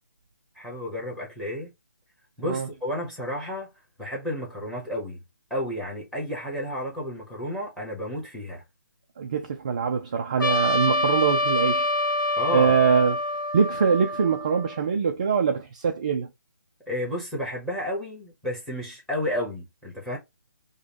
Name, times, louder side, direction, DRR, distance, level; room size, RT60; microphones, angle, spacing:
voice 1, 0.5-1.7 2.4-3.7 4.0-5.2 5.5-8.6 12.4-12.8 16.9-20.2, left 1 dB, ahead, 1.0 m, -31 dB
voice 2, 9.2-11.9 12.5-13.2 13.5-16.3, right 6 dB, 20° right, 0.3 m, -23 dB
Trumpet, 10.4-14.9, left 1 dB, 70° left, 1.3 m, -26 dB
5.0 x 2.2 x 2.8 m
hypercardioid pair, 170°, 11 cm